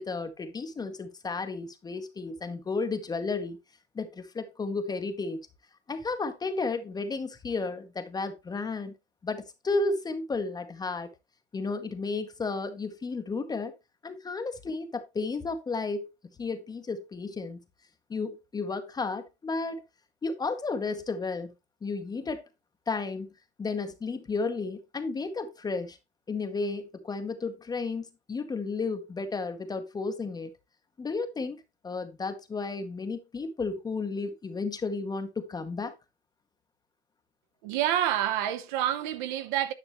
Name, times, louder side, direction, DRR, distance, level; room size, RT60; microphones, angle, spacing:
voice 1, 0.0-3.6 3.9-5.4 5.9-8.9 9.2-11.1 11.5-13.7 14.0-16.1 16.4-17.6 18.1-19.8 20.2-21.5 21.8-22.4 22.9-23.3 23.6-26.0 26.3-30.5 31.0-35.9, left 3 dB, 10° left, 0.9 m, -33 dB
voice 2, 37.6-39.7, right 11 dB, 45° right, 0.9 m, -28 dB
10.0 x 5.9 x 3.1 m
hypercardioid pair, 110°, 33 cm